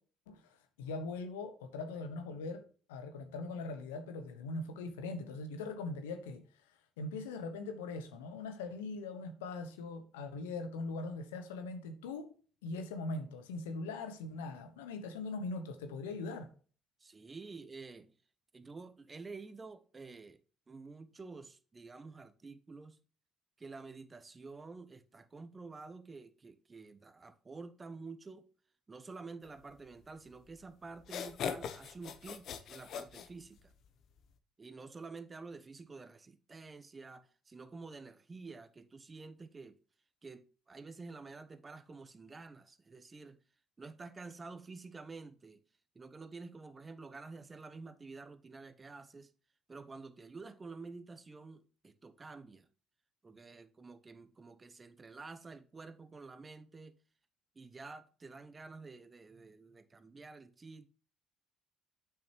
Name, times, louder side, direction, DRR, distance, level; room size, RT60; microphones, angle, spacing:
voice 1, 0.3-6.4 7.0-12.3 12.6-16.5, left 3 dB, 85° left, 1.1 m, -41 dB
voice 2, 17.0-18.2 18.5-20.4 20.7-23.0 23.6-28.5 28.9-33.7 34.6-39.8 40.2-43.4 43.8-45.6 45.9-49.3 49.7-52.7 53.2-57.0 57.5-60.9, right 4 dB, 30° right, 0.9 m, -49 dB
sound 1, 30.4-30.5 31.0-33.9, left 7 dB, 60° left, 0.9 m, -40 dB
8.4 x 6.0 x 3.0 m
hypercardioid pair, 55°, 0 cm